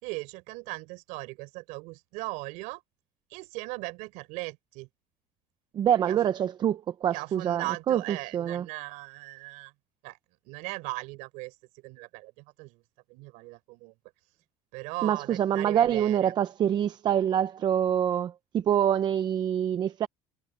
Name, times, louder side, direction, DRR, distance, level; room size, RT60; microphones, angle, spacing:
voice 1, 0.0-2.8 3.3-4.9 6.1-6.2 7.1-9.7 10.0-10.2 10.4-12.8 13.1-13.9 14.7-16.3, right 24 dB, 80° right, 4.2 m, -38 dB
voice 2, 5.7-8.0 8.3-8.6 15.0-20.1, right 10 dB, 35° right, 0.6 m, -25 dB
cardioid pair, 150°, 13 cm